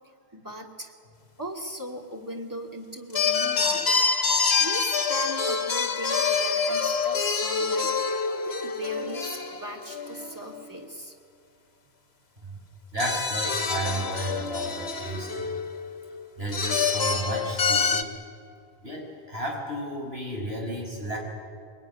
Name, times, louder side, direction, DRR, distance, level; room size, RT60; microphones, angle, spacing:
voice 1, 0.3-0.9 1.4-4.0 4.6-7.9 8.5-11.1, right 1 dB, 20° right, 1 dB, 2.5 m, -38 dB
sound 1, 3.1-10.7 13.0-16.0 16.5-18.0, left 5 dB, 90° left, 1.6 m, -26 dB
voice 2, 12.9-15.5 16.4-18.1 18.8-21.2, right 1 dB, 75° right, -2 dB, 6.6 m, -33 dB
23.5 x 20.5 x 10.0 m, 2.2 s
omnidirectional pair, 1.0 m